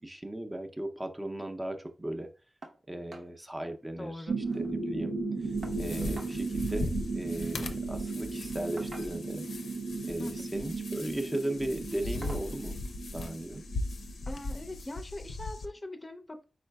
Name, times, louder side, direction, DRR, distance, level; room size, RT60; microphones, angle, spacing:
voice 1, 0.0-2.3 2.9-9.4 10.0-12.8 13.1-13.6, right 1 dB, 20° right, 5 dB, 0.6 m, -37 dB
sound 1, 2.6-2.8 3.1-3.3 3.7-3.8 4.1-4.8 5.6-6.4 7.6-7.8 8.8-9.4 10.5-10.8 11.2-11.4 12.2-12.5 13.8-13.9 14.4-14.5, right 2 dB, 60° right, 0.8 m, -48 dB
voice 2, 4.0-4.4 10.2-10.4 14.3-16.4, left 1 dB, 25° left, 5 dB, 0.5 m, -41 dB
sound 2, 4.3-14.7, right 3 dB, 85° right, 0.4 m, -36 dB
sound 3, 5.4-15.7, left 2 dB, 90° left, 0.5 m, -39 dB
4.6 x 4.3 x 2.2 m, 0.34 s
wide cardioid pair, 85°, 0 cm